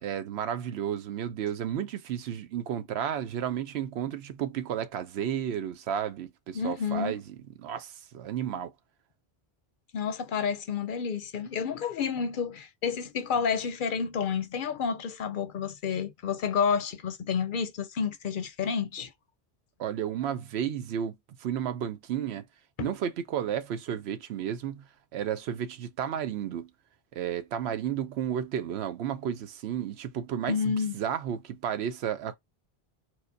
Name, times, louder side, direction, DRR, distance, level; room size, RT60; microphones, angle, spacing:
voice 1, 0.0-8.7 19.8-22.4 22.8-26.7 27.1-32.4, right 9 dB, 90° right, 0.9 m, -32 dB
voice 2, 6.5-7.2 9.9-19.1 22.8-22.9 30.5-31.0, left 6 dB, 60° left, 0.7 m, -30 dB
4.5 x 2.1 x 2.6 m
omnidirectional pair, 1.0 m